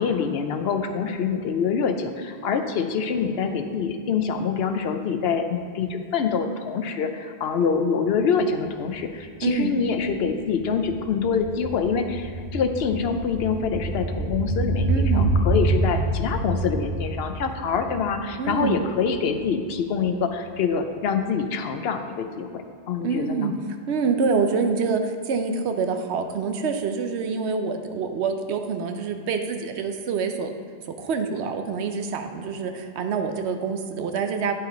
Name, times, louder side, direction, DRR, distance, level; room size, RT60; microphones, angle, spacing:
voice 1, 0.0-23.5, left 6 dB, 70° left, 7 dB, 0.8 m, -25 dB
sound 1, 8.7-8.8 9.0-19.4 19.7-19.8, right 2 dB, 65° right, 1.2 m, -27 dB
voice 2, 9.4-9.8 14.9-15.4 18.4-18.8 23.0-23.5 23.9-30.5 31.0-34.5, right 5 dB, 85° right, 7 dB, 0.9 m, -26 dB
9.8 x 5.6 x 3.9 m, 2.2 s
omnidirectional pair, 1.1 m